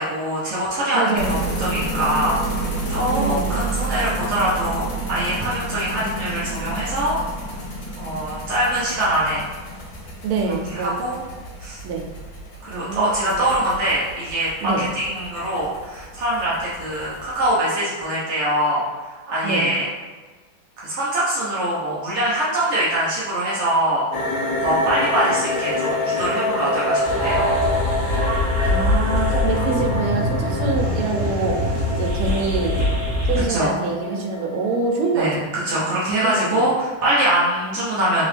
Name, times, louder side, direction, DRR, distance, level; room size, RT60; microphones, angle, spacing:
voice 1, 0.0-2.6 2.9-7.2 8.0-9.4 10.7-11.2 11.6-11.8 12.6-18.8 19.3-19.9 20.8-24.1 24.6-27.5 33.5-33.7 35.1-35.4 35.6-38.2, right 1 dB, 70° right, -7 dB, 0.6 m, -23 dB
voice 2, 0.9-1.5 3.1-3.6 10.2-11.1 11.8-12.1 12.7-13.5 14.6-14.8 19.4-19.7 28.7-31.6 32.0-32.8 33.3-35.5 36.2-36.6, right 4 dB, 85° right, 2 dB, 1.5 m, -25 dB
sound 1, 1.1-17.5, right 2 dB, 55° left, 1.2 m, -30 dB
sound 2, 24.1-35.1, left 2 dB, 75° left, 1.2 m, -26 dB
sound 3, 27.0-33.4, left 1 dB, 45° right, 1.0 m, -23 dB
3.7 x 2.9 x 3.2 m, 1.4 s
omnidirectional pair, 2.3 m